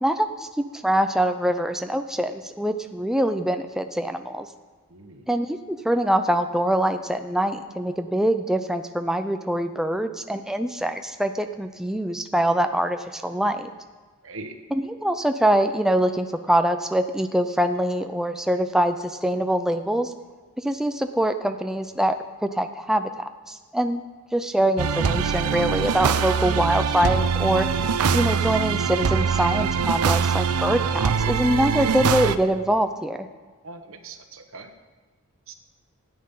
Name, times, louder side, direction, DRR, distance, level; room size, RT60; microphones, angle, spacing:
voice 1, 0.0-4.5 5.3-13.7 14.7-20.1 20.6-24.0 24.3-27.7 28.1-33.3, right 1 dB, ahead, 7 dB, 0.4 m, -24 dB
voice 2, 4.9-5.3 14.2-14.5 33.6-34.7 35.5-35.6, right 3 dB, 65° right, 6 dB, 1.2 m, -41 dB
sound 1, 24.8-32.4, right 6 dB, 85° right, 0.6 m, -23 dB
13.5 x 9.7 x 5.6 m, 1.4 s
head